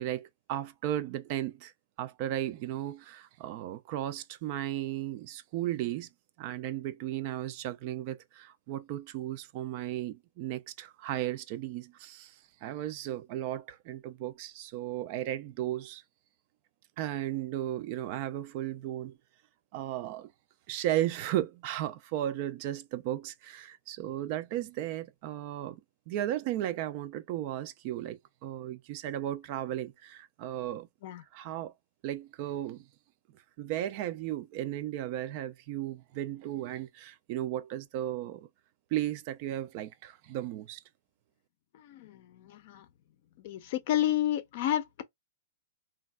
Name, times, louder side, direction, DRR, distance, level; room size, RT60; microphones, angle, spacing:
voice 1, 0.0-1.7 2.0-6.1 6.4-12.4 12.6-16.0 17.0-19.2 19.7-20.3 20.7-25.8 26.1-30.9 31.3-31.7 32.0-32.9 33.6-38.5 38.9-40.8, right 13 dB, 45° right, 0.3 m, -35 dB
voice 2, 41.7-42.9 43.4-45.0, left 12 dB, 50° left, 0.5 m, -31 dB
3.3 x 2.2 x 2.2 m
hypercardioid pair, 140°, 0 cm